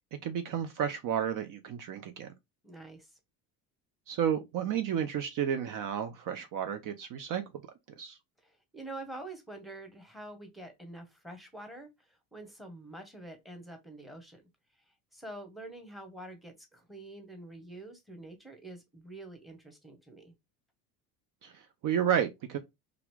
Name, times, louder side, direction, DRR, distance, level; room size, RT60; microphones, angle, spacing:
voice 1, 0.2-2.3 4.1-7.4 8.0-8.2 21.4-22.6, right 9 dB, 50° right, 0.6 m, -32 dB
voice 2, 2.6-3.2 8.4-14.4 15.1-20.3, right 2 dB, ahead, 1.0 m, -46 dB
2.8 x 2.5 x 3.1 m
supercardioid pair, 80°, 44 cm